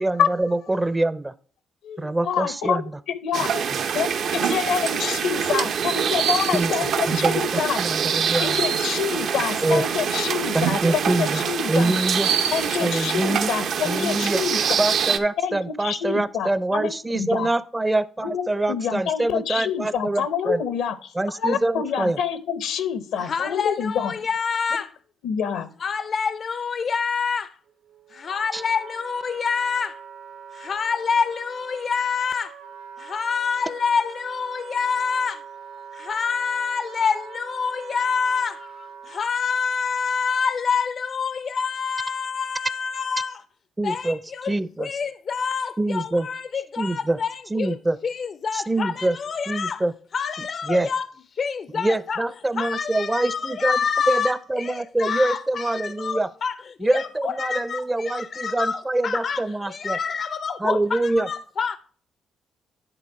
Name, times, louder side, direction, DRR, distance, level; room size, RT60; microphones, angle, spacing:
voice 1, 0.0-1.3 2.0-2.8 6.5-6.7 7.1-7.4 7.8-8.6 9.6-9.8 10.5-11.4 11.7-12.3 12.8-13.5 13.8-14.4 14.8-20.6 21.2-22.2 28.5-28.6 43.8-44.2 44.4-44.9 45.8-46.3 46.8-47.2 47.5-48.0 48.5-49.2 49.5-49.9 50.7-50.9 51.7-53.8 54.1-56.3 56.8-60.0 60.6-61.3, right 2 dB, 15° right, 0.4 m, -24 dB
voice 2, 1.8-2.8 3.2-3.5 3.9-7.8 8.4-12.0 12.5-14.6 15.4-17.5 18.2-18.4 18.7-24.1 25.2-25.7, left 7 dB, 85° left, 0.8 m, -27 dB
sound 1, 3.3-15.2, right 7 dB, 70° right, 0.6 m, -24 dB
voice 3, 23.2-24.9 25.8-27.6 28.1-30.0 30.5-32.6 33.0-35.4 35.9-43.4 43.8-47.8 48.0-49.8 50.1-51.1 51.3-52.2 52.5-61.8, left 6 dB, 50° left, 0.4 m, -27 dB
Wind instrument woodwind instrument, 27.6-39.3, right 7 dB, 85° right, 1.3 m, -42 dB
9.9 x 3.7 x 4.6 m
cardioid pair, 90°, 0 cm